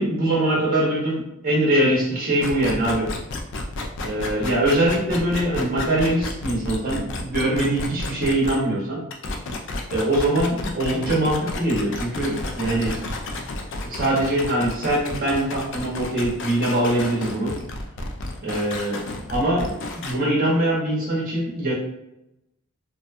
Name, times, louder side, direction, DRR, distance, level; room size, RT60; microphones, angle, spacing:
voice 1, 0.0-3.1 4.0-9.0 9.9-13.0 13.9-17.5 18.4-21.7, right 1 dB, 40° right, -5 dB, 0.7 m, -23 dB
sound 1, 2.4-8.6 9.1-20.1, left 2 dB, 55° left, 0.3 m, -32 dB
2.6 x 2.2 x 2.4 m, 0.85 s
head